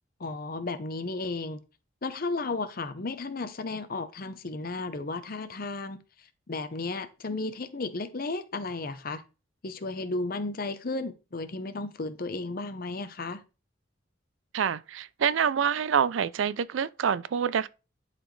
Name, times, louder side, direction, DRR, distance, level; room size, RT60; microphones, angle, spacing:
voice 1, 0.2-1.6 2.0-6.0 6.5-9.2 9.6-13.4, left 3 dB, 50° left, 0.7 m, -34 dB
voice 2, 14.5-17.7, right 7 dB, 80° right, 0.4 m, -26 dB
11.0 x 4.1 x 3.2 m
head